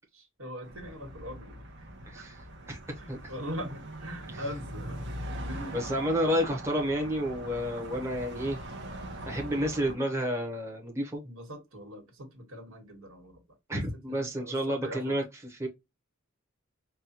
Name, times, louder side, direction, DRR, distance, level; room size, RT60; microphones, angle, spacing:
voice 1, 0.1-1.6 2.1-2.3 3.0-6.0 9.8-10.0 11.2-13.4 13.7-15.2, equal, 75° right, 1.7 m, -42 dB
sound 1, 0.6-9.9, right 1 dB, 55° right, 1.0 m, -41 dB
voice 2, 2.1-2.4 2.7-2.8 3.1-3.2 4.3-4.4 5.7-8.6 9.3-11.2 13.7-15.7, equal, 15° right, 0.9 m, -30 dB
5.3 x 2.3 x 2.8 m
head